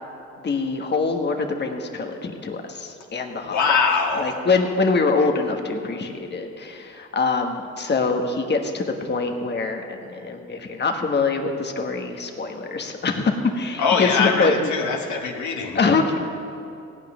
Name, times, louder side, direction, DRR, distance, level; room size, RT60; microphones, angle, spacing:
voice 1, 0.4-3.6 4.2-14.7 15.7-16.2, left 4 dB, 35° left, 4 dB, 1.4 m, -24 dB
voice 2, 3.4-4.4 13.8-15.8, left 5 dB, 70° left, 1 dB, 1.7 m, -22 dB
16.0 x 5.9 x 9.7 m, 2.5 s
cardioid pair, 90°, 30 cm